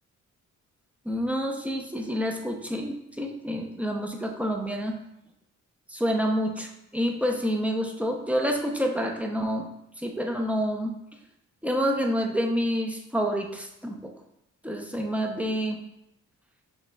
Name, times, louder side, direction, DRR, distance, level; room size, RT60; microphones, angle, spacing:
voice 1, 1.1-5.0 5.9-9.7 10.0-10.9 11.6-14.1 14.6-15.8, equal, 5° right, 2 dB, 0.6 m, -28 dB
5.7 x 3.9 x 2.3 m, 0.82 s
cardioid pair, 90°, 32 cm